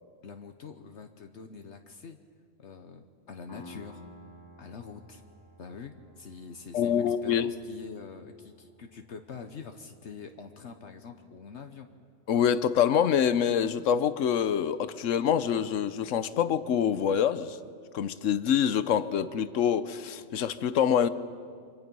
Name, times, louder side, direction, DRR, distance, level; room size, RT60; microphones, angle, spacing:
voice 1, 0.2-2.2 2.6-4.0 4.6-5.2 5.6-11.9, left 5 dB, 65° left, 6 dB, 1.3 m, -45 dB
Piano, 3.5-10.9, left 1 dB, 15° left, 2.8 m, -54 dB
voice 2, 6.7-7.5 12.3-17.6 17.9-21.1, left 8 dB, 85° left, 14 dB, 1.1 m, -26 dB
29.0 x 25.0 x 5.4 m, 2.2 s
omnidirectional pair, 1.3 m